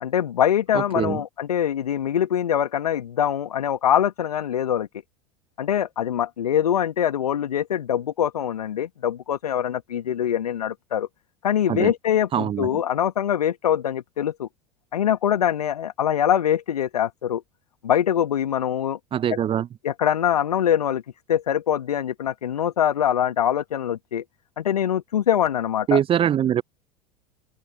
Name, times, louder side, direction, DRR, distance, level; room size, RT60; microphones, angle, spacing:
voice 1, 0.0-4.9 5.6-11.1 11.4-14.5 14.9-17.4 17.8-19.0 19.8-21.0 21.3-24.2 24.6-26.0, left 10 dB, 75° left, 1.4 m, -23 dB
voice 2, 0.7-1.2 11.7-11.9 12.3-12.8 19.1-19.7 25.9-26.6, right 10 dB, 25° right, 0.6 m, -23 dB
open air
figure-of-eight pair, 75°, 20 cm